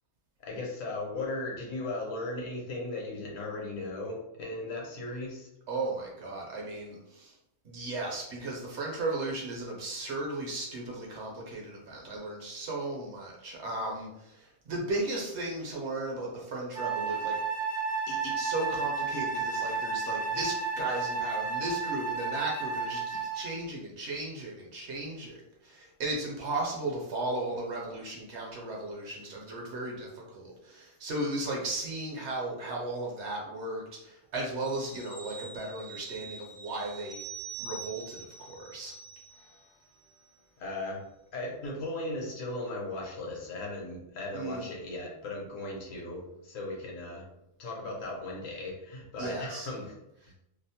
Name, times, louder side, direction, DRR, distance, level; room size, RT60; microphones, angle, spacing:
voice 1, 0.4-5.5 40.6-41.0 41.3-47.2 47.6-49.9, left 2 dB, 75° left, -2 dB, 1.1 m, -37 dB
voice 2, 5.7-7.4 7.6-17.4 18.1-37.2 37.6-39.0 44.3-44.7 49.2-49.7 50.3-50.4, right 2 dB, 60° right, -1 dB, 0.9 m, -36 dB
Wind instrument woodwind instrument, 16.7-23.5, right 4 dB, 35° right, 0.5 m, -32 dB
sound 1, 34.6-39.7 40.0-40.2, right 5 dB, 30° left, 0.4 m, -45 dB
2.7 x 2.0 x 2.7 m, 0.84 s
omnidirectional pair, 1.4 m